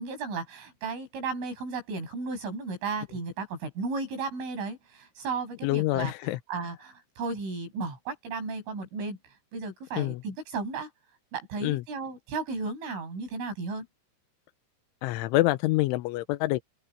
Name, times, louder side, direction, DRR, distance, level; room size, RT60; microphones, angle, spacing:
voice 1, 0.0-6.1 6.5-10.9 11.3-13.9, right 4 dB, 85° right, 10.5 m, -34 dB
voice 2, 5.6-6.4 10.0-10.2 11.6-11.8 15.0-16.6, left 18 dB, 90° left, 3.2 m, -26 dB
open air
omnidirectional pair, 5.5 m